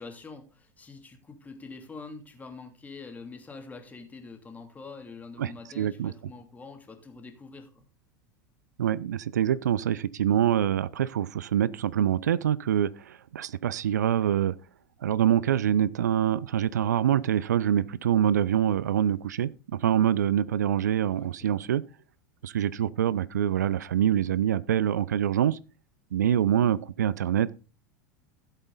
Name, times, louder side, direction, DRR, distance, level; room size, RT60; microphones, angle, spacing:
voice 1, 0.0-7.8 21.2-21.7, left 4 dB, 15° left, 3.0 m, -45 dB
voice 2, 5.4-6.1 8.8-14.5 15.0-21.8 22.4-25.6 26.1-27.5, right 10 dB, 70° right, 0.5 m, -25 dB
15.0 x 8.2 x 4.0 m
figure-of-eight pair, 80°, 10 cm